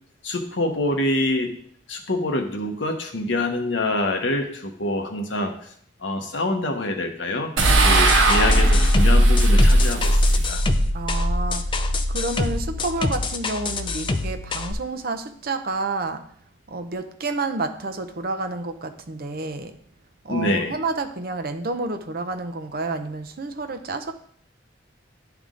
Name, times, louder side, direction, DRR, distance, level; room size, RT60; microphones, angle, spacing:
voice 1, 0.2-1.5 1.9-5.7 6.0-7.5 7.8-10.6 20.3-20.7, left 2 dB, 70° left, 4 dB, 1.0 m, -25 dB
sound 1, 7.6-12.9, right 1 dB, 85° right, 1.0 m, -18 dB
sound 2, 7.9-14.7, left 3 dB, 25° left, 0.4 m, -28 dB
voice 2, 10.9-11.8 12.1-16.2 16.7-19.8 20.2-24.1, right 3 dB, 50° right, 7 dB, 0.6 m, -29 dB
10.5 x 3.5 x 3.8 m, 0.62 s
head